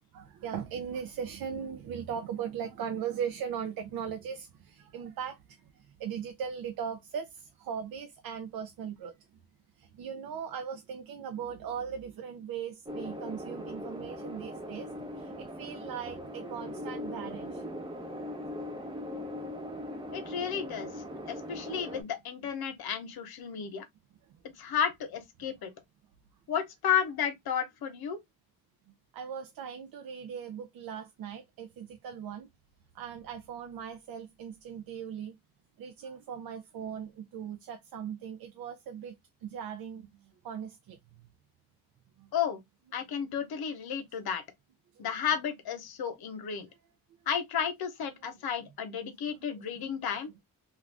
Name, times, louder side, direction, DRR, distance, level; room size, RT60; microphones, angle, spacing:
voice 1, 0.1-9.2 9.8-17.7 23.6-23.7 24.3-24.4 29.1-32.5 32.9-35.4 35.8-39.1 39.4-41.0 42.2-42.3 45.0-45.1 48.2-48.3 49.3-49.4 49.7-49.9, right 7 dB, 70° right, 0.5 m, -39 dB
sound 1, 12.9-22.0, equal, 15° right, 0.5 m, -40 dB
voice 2, 20.1-20.9 21.3-23.9 24.6-25.7 26.5-28.2 42.3-42.6 42.9-44.4 45.0-46.7 47.3-50.3, left 8 dB, 85° left, 0.8 m, -32 dB
2.5 x 2.3 x 3.1 m
wide cardioid pair, 125°, 37 cm